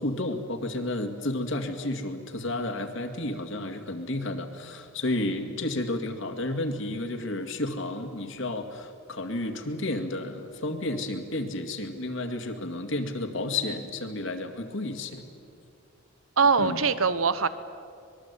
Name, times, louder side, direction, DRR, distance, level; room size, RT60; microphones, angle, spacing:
voice 1, 0.0-15.2 16.6-16.8, left 2 dB, 65° left, 6 dB, 2.2 m, -31 dB
voice 2, 16.4-17.5, right 5 dB, 80° right, 14 dB, 1.1 m, -22 dB
25.0 x 21.5 x 8.3 m, 2.4 s
head